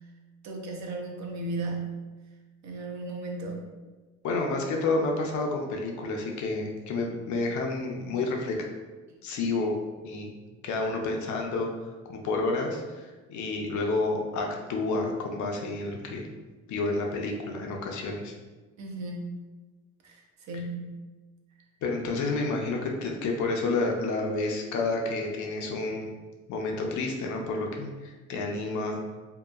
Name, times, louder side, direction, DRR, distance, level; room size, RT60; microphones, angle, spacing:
voice 1, 0.4-2.1 2.6-3.7 18.8-19.4 20.0-21.0, right 2 dB, 65° right, 1 dB, 0.6 m, -35 dB
voice 2, 4.2-8.6 9.2-9.7 10.0-10.3 10.6-16.3 16.7-18.3 21.8-26.1 26.5-29.0, left 3 dB, 75° left, 1 dB, 0.5 m, -30 dB
2.8 x 2.2 x 2.3 m, 1.2 s
cardioid pair, 90°, 30 cm